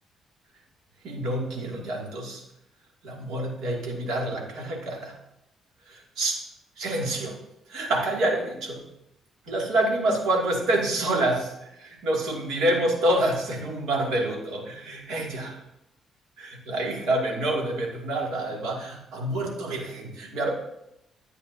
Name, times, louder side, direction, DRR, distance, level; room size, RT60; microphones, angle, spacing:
voice 1, 1.0-2.4 3.0-5.2 5.9-6.4 6.8-7.4 7.7-8.8 9.5-15.6 16.4-20.5, right 1 dB, 85° right, -1 dB, 2.4 m, -27 dB
13.5 x 8.1 x 2.8 m, 0.84 s
cardioid pair, 90°, 0 cm